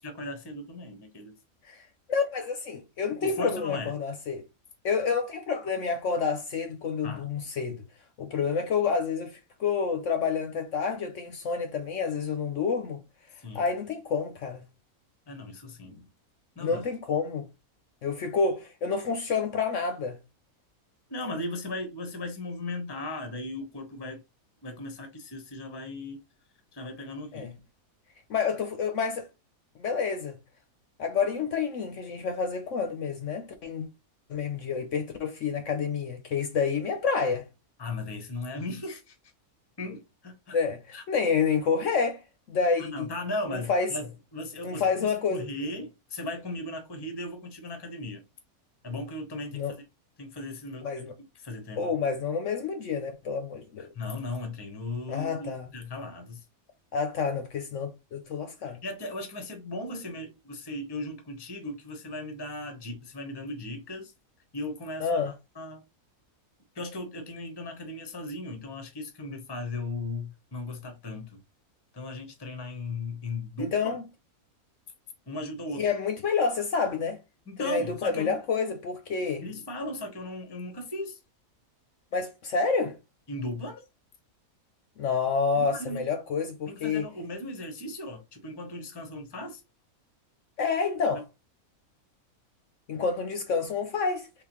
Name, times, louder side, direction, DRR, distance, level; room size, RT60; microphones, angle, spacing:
voice 1, 0.0-1.4 3.2-3.9 7.0-7.3 13.4-13.6 15.3-16.1 16.6-16.8 21.1-24.2 24.6-26.2 26.7-27.5 37.8-39.2 39.8-40.6 40.9-41.0 42.8-48.2 48.8-49.8 50.2-51.1 51.3-52.0 53.8-56.4 58.8-64.1 64.5-65.8 66.7-71.4 71.9-74.0 75.3-75.8 77.5-78.4 79.2-81.2 83.3-83.8 85.5-86.1 86.7-89.6 91.1-91.2, left 2 dB, 20° left, 0.8 m, -37 dB
voice 2, 2.1-4.4 4.8-7.8 8.2-13.0 13.5-14.6 16.6-17.4 18.0-20.2 27.3-27.5 28.3-29.3 29.8-30.3 31.0-33.9 34.3-37.5 40.5-42.2 42.5-43.1 43.5-43.9 44.6-45.5 49.5-49.7 50.8-51.1 51.8-53.9 55.1-55.7 56.9-58.8 65.0-65.3 73.6-74.0 75.8-77.2 77.6-79.4 82.1-83.0 85.0-87.1 90.6-91.2 92.9-94.3, left 5 dB, 65° left, 1.0 m, -28 dB
3.8 x 3.2 x 3.0 m
omnidirectional pair, 1.5 m